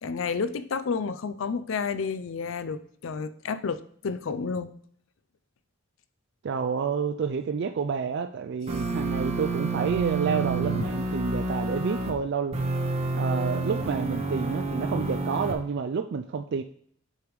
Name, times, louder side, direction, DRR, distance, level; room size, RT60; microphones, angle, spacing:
voice 1, 0.0-4.7, left 5 dB, 70° left, 12 dB, 0.4 m, -30 dB
voice 2, 6.4-12.6 13.1-16.6, right 5 dB, 55° right, 8 dB, 0.3 m, -29 dB
sound 1, 8.7-12.1 12.5-15.5, right 3 dB, 30° right, 0.9 m, -29 dB
8.2 x 5.1 x 3.1 m, 0.62 s
head